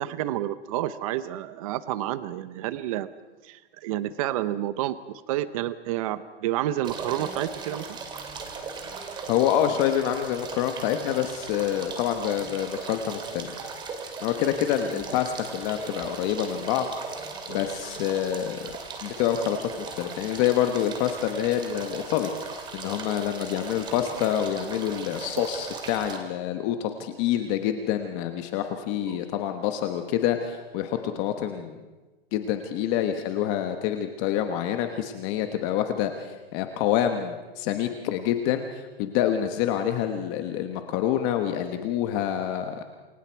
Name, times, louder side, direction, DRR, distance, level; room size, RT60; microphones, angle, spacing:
voice 1, 0.0-3.1 3.4-8.0 14.9-15.1 29.0-29.2, right 13 dB, 35° right, 14 dB, 0.8 m, -30 dB
sound 1, 6.8-26.2, right 4 dB, 15° right, 2.3 m, -38 dB
voice 2, 9.3-13.6 14.2-16.9 17.5-18.7 19.0-31.8 32.3-42.8, left 10 dB, 30° left, 7 dB, 1.2 m, -27 dB
28.0 x 23.0 x 4.6 m, 1.2 s
hypercardioid pair, 165°, 31 cm